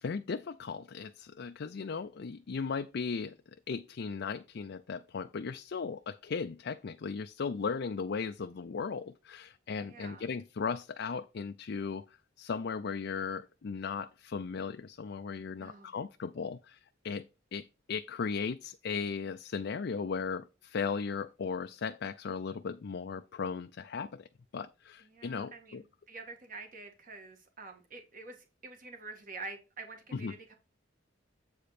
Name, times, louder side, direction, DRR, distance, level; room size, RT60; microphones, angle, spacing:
voice 1, 0.0-3.4 3.7-12.0 12.4-24.3 24.5-25.8 30.1-30.3, left 5 dB, 55° left, 0.4 m, -37 dB
voice 2, 9.8-10.3 15.5-15.9 25.0-30.6, right 3 dB, 45° right, 1.9 m, -47 dB
8.0 x 5.1 x 4.2 m
head